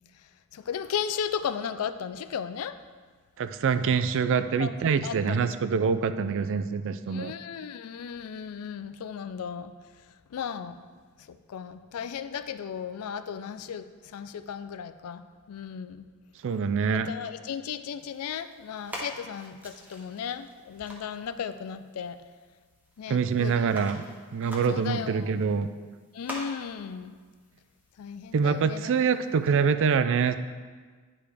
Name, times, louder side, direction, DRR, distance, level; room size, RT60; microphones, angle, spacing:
voice 1, 0.5-2.8 4.6-4.7 5.0-5.4 7.1-9.7 10.3-10.7 11.3-13.9 14.1-15.2 15.5-16.1 16.9-22.2 23.0-23.9 24.7-25.3 26.1-27.1 28.0-28.9, left 7 dB, 80° left, 12 dB, 0.4 m, -35 dB
voice 2, 3.4-7.3 16.4-17.1 23.1-24.0 24.3-25.7 28.3-30.3, right 6 dB, 60° right, 11 dB, 0.4 m, -25 dB
sound 1, 18.0-29.6, equal, 10° right, 0.9 m, -46 dB
9.9 x 4.9 x 3.4 m, 1.5 s
head